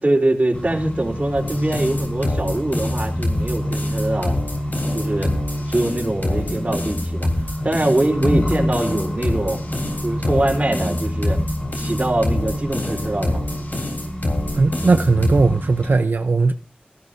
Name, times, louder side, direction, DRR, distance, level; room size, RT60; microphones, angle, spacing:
voice 1, 0.0-4.4 4.9-5.3 5.7-7.3 7.6-9.6 10.0-11.4 11.8-13.4 13.7-13.8, right 1 dB, 45° right, 3.6 m, -23 dB
Accelerating revving vroom, 0.5-16.0, equal, 40° left, 6.2 m, -28 dB
sound 1, 1.3-15.4, left 1 dB, 70° left, 3.5 m, -26 dB
voice 2, 14.5-16.5, right 3 dB, 90° right, 0.6 m, -17 dB
20.5 x 14.0 x 2.6 m
wide cardioid pair, 50°, 3 cm